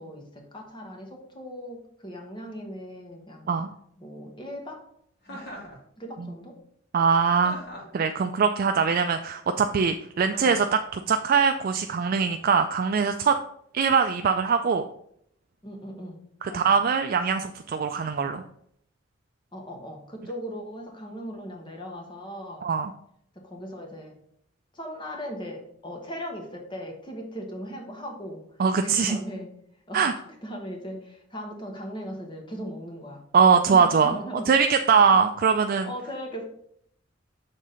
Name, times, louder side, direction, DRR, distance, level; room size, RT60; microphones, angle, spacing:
voice 1, 0.0-3.5 4.0-4.8 5.3-5.4 6.0-6.5 15.6-16.2 16.5-16.7 19.5-22.6 23.4-24.1 24.7-28.4 28.8-29.5 29.9-33.2 33.7-34.5 34.9-35.0 35.8-36.4, equal, 25° left, 2 dB, 1.2 m, -38 dB
Chuckle chortle, 5.2-5.8 7.4-8.0 10.3-10.7, equal, 50° left, 2.2 m, -40 dB
voice 2, 6.9-7.5 7.9-13.4 13.7-14.8 16.4-18.4 22.6-22.9 28.6-29.2 29.9-30.1 33.3-34.2 34.5-35.9, right 6 dB, 45° right, 7 dB, 0.3 m, -22 dB
6.6 x 3.6 x 5.5 m, 0.70 s
head